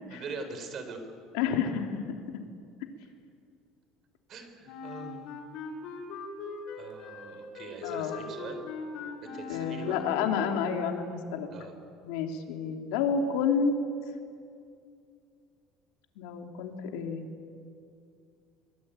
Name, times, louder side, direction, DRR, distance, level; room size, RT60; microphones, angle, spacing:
voice 1, 0.1-1.0 4.3-5.3 6.8-8.6 9.2-10.0 11.5-11.8, right 4 dB, 40° right, 7 dB, 4.3 m, -42 dB
voice 2, 1.3-2.0 2.3-2.4 7.8-8.2 9.5-11.5 12.0-13.8 16.2-17.2, left 6 dB, 90° left, 4 dB, 3.1 m, -29 dB
Wind instrument woodwind instrument, 4.7-10.6, left 3 dB, 65° left, 4.8 m, -41 dB
24.5 x 24.0 x 9.1 m, 2.4 s
cardioid pair, 155°, 0 cm